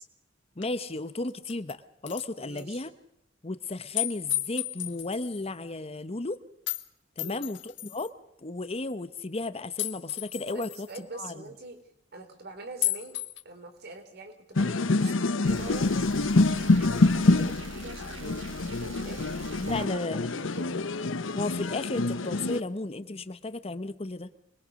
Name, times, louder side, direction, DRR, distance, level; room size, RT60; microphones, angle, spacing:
sound 1, 0.6-0.7 1.3-1.7 2.1-2.2 2.6-2.7 4.0-5.4 6.7-6.8 7.2-8.1 9.8-10.9 12.8-13.4, left 15 dB, 70° left, 1.6 m, -33 dB
voice 1, 0.6-1.8 2.0-2.9 3.4-6.4 7.2-8.1 8.4-10.9 11.1-11.3 19.6-20.3 21.3-24.3, left 2 dB, 30° left, 13 dB, 0.9 m, -34 dB
voice 2, 2.4-2.8 7.2-7.4 10.5-11.8 12.1-13.2 13.4-15.9 16.5-19.4 19.7-20.1 20.3-20.8, right 2 dB, 55° right, 6 dB, 3.8 m, -44 dB
sound 2, 14.6-22.6, left 2 dB, 90° left, 0.9 m, -26 dB
sound 3, 15.5-19.9, right 3 dB, 75° right, 1.3 m, -43 dB
25.5 x 21.5 x 6.5 m, 0.78 s
head